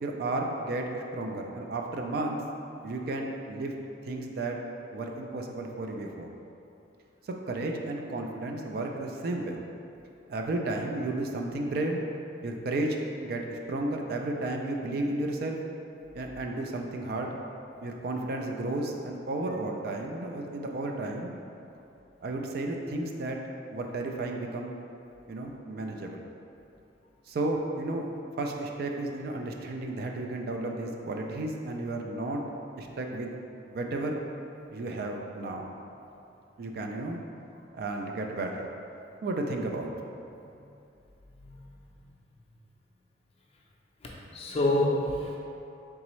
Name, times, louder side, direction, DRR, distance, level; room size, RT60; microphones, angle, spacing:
voice 1, 0.0-2.4 2.8-3.7 4.0-4.6 4.9-6.3 7.3-9.6 10.3-12.0 12.4-15.6 16.1-17.4 17.8-21.3 22.2-23.4 23.7-24.7 25.3-26.2 27.3-28.1 28.4-32.4 32.8-33.3 33.7-34.2 34.7-35.6 36.6-37.2 37.7-38.7 39.2-39.9, right 2 dB, 55° right, 2 dB, 0.3 m, -33 dB
voice 2, 41.3-42.1 44.0-45.4, left 1 dB, 30° left, -2 dB, 0.5 m, -30 dB
4.0 x 3.5 x 3.0 m, 2.7 s
head